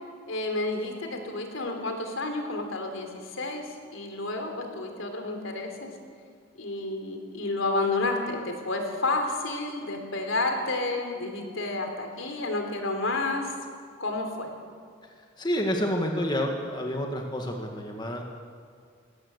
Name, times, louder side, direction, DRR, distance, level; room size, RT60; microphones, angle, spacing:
voice 1, 0.3-3.6 3.9-5.9 6.6-13.5 14.0-14.5, left 2 dB, 75° left, 4 dB, 3.3 m, -30 dB
voice 2, 15.4-18.2, equal, 20° left, 2 dB, 1.6 m, -29 dB
19.5 x 16.5 x 8.0 m, 2.1 s
head